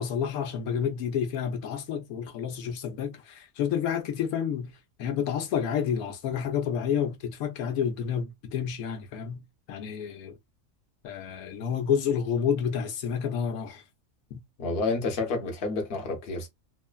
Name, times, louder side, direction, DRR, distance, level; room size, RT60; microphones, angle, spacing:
voice 1, 0.0-4.7 5.0-10.4 11.0-13.8 14.3-14.4, left 8 dB, 85° left, 1.1 m, -29 dB
voice 2, 14.6-16.5, left 3 dB, 50° left, 1.0 m, -29 dB
3.1 x 2.0 x 2.2 m
omnidirectional pair, 1.5 m